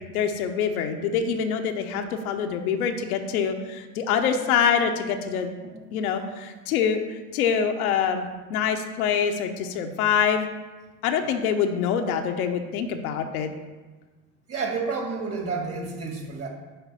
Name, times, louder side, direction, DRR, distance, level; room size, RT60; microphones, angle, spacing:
voice 1, 0.1-5.5 5.9-7.0 7.3-10.5 11.0-13.5, left 7 dB, 65° left, 5 dB, 0.9 m, -25 dB
voice 2, 14.5-16.5, right 4 dB, 30° right, 1 dB, 2.1 m, -30 dB
10.0 x 4.0 x 5.5 m, 1.3 s
figure-of-eight pair, 65°, 48 cm